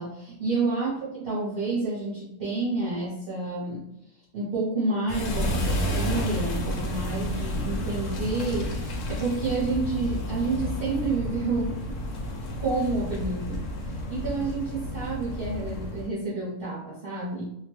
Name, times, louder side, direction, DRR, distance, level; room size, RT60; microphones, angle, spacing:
voice 1, 0.0-3.9 4.3-12.0 12.6-17.4, right 3 dB, 45° right, -8 dB, 0.8 m, -29 dB
sound 1, 5.1-16.1, left 1 dB, 65° left, 0.9 m, -31 dB
2.7 x 2.1 x 3.0 m, 0.83 s
omnidirectional pair, 1.6 m